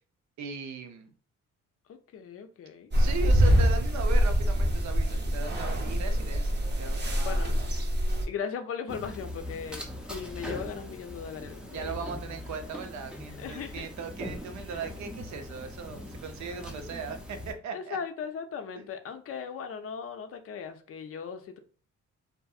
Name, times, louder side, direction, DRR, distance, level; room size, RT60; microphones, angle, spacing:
voice 1, 0.4-1.1 2.9-7.6 11.7-18.0, right 5 dB, 70° right, 0.5 m, -38 dB
voice 2, 1.9-2.9 7.2-7.5 8.3-12.1 13.4-13.9 14.7-14.8 17.7-21.6, left 7 dB, 50° left, 0.4 m, -38 dB
sound 1, 2.9-8.2, equal, 35° right, 0.7 m, -25 dB
sound 2, 8.9-17.5, left 1 dB, 5° right, 0.5 m, -41 dB
2.5 x 2.5 x 2.3 m
cardioid pair, 90°, 30 cm